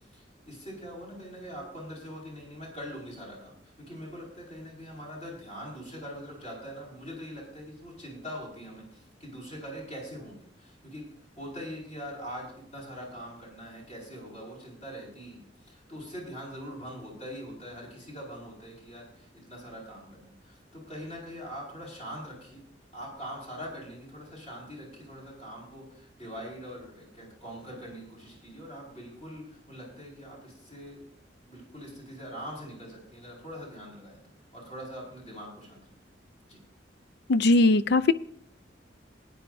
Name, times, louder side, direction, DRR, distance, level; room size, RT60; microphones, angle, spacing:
voice 1, 0.0-11.1 11.4-22.6 22.9-31.1 31.5-34.2 34.5-35.9 36.5-36.6, equal, 35° left, -3 dB, 5.1 m, -43 dB
voice 2, 37.3-38.1, left 2 dB, 65° left, 15 dB, 0.4 m, -20 dB
19.5 x 9.9 x 2.6 m, 0.68 s
head